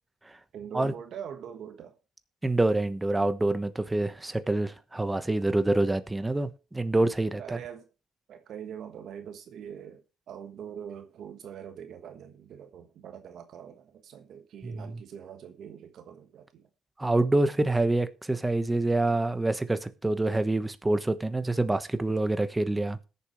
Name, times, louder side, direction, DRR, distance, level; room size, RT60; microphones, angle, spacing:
voice 1, 0.5-2.0 7.4-7.9 8.3-16.7, right 8 dB, 70° right, 1.3 m, -43 dB
voice 2, 2.4-7.6 14.6-15.0 17.0-23.0, right 2 dB, 15° right, 1.1 m, -26 dB
20.0 x 7.1 x 3.1 m
cardioid pair, 90°, 0 cm